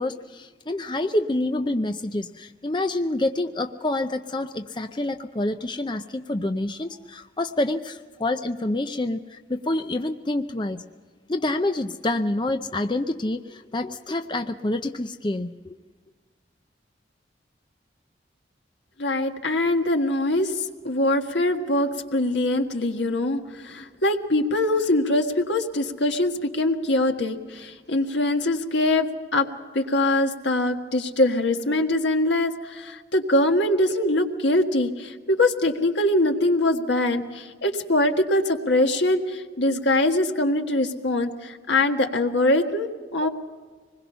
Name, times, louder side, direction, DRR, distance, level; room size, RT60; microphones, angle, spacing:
voice 1, 0.0-10.9 11.3-15.8, left 2 dB, 25° left, 7 dB, 0.6 m, -27 dB
voice 2, 19.0-29.5 29.7-43.3, left 1 dB, 80° left, 5 dB, 1.6 m, -23 dB
25.5 x 21.0 x 5.6 m, 1.5 s
head